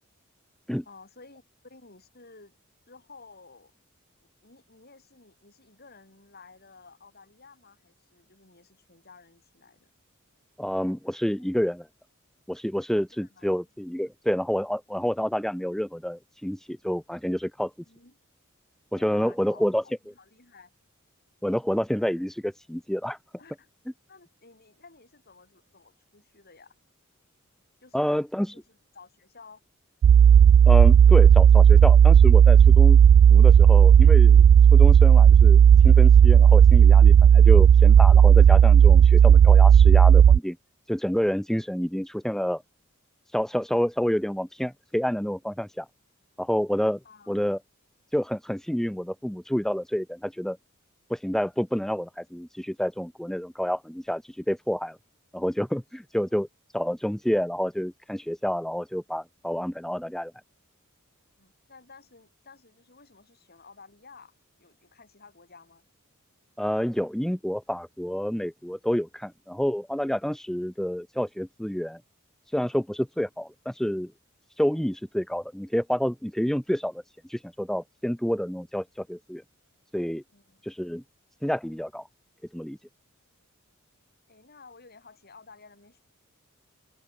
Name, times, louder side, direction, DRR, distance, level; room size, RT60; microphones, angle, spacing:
voice 1, 0.9-2.6 2.9-3.7 4.2-9.9 13.1-13.5 17.9-18.2 19.0-20.7 23.4-23.7 24.1-26.8 27.8-28.2 28.5-29.6 47.0-47.4 61.4-64.3 64.6-65.9 80.3-80.6 83.9-84.0 84.3-86.0, left 4 dB, 50° left, 6.8 m, -53 dB
voice 2, 10.6-11.9 12.5-17.7 18.9-19.8 21.4-23.2 27.9-28.5 30.7-33.0 33.3-34.4 34.7-40.6 40.9-42.6 43.3-45.9 46.4-47.0 47.3-47.6 48.1-50.6 51.1-55.0 55.3-56.5 56.7-60.3 66.6-72.0 72.5-74.1 74.6-77.0 77.3-79.4 79.9-80.2 80.6-81.0 81.4-82.0 82.5-82.8, equal, ahead, 0.4 m, -28 dB
sound 1, 30.0-40.4, right 8 dB, 80° right, 0.3 m, -13 dB
open air
head